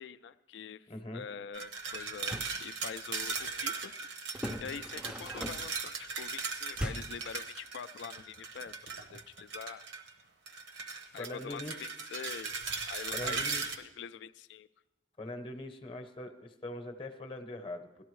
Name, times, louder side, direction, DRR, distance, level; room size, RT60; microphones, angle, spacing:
voice 1, 0.0-0.9 1.1-4.2 4.6-8.8 9.1-9.8 11.1-12.6 12.9-14.7, left 7 dB, 75° left, 14 dB, 0.3 m, -45 dB
voice 2, 0.9-1.2 11.1-11.8 13.1-13.7 15.2-17.9, left 1 dB, 30° left, 7 dB, 0.8 m, -42 dB
sound 1, 1.5-10.1 10.5-13.8, right 4 dB, 90° right, 1.0 m, -38 dB
sound 2, 2.1-2.6 4.3-5.8 6.8-7.3, equal, 5° right, 0.4 m, -39 dB
17.5 x 12.5 x 3.1 m, 0.95 s
head